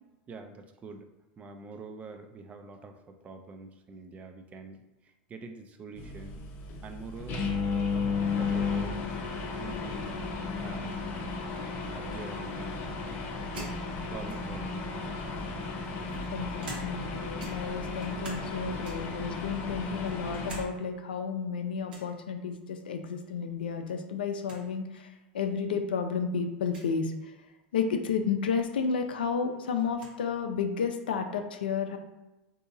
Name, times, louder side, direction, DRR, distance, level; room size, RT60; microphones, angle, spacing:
voice 1, 0.3-1.1 1.4-6.4 6.8-9.1 9.6-10.1 10.6-11.0 11.9-13.2 14.1-15.2, right 3 dB, 30° right, 6 dB, 0.4 m, -45 dB
sound 1, 6.0-20.6, left 4 dB, 45° left, 0.7 m, -34 dB
sound 2, 13.5-14.7 15.5-17.1 17.4-18.5 18.8-19.2 19.7-20.7 21.0-21.1 21.9-22.1 23.6-23.9 24.2-24.3 24.4-24.6 25.4-25.5 26.6-26.9 28.6-28.7 29.0-30.2, right 2 dB, 85° right, 0.9 m, -46 dB
voice 2, 16.3-27.3 27.7-32.0, left 6 dB, 90° left, 5 dB, 0.4 m, -32 dB
3.7 x 2.7 x 2.6 m, 1.0 s
hypercardioid pair, 105°, 5 cm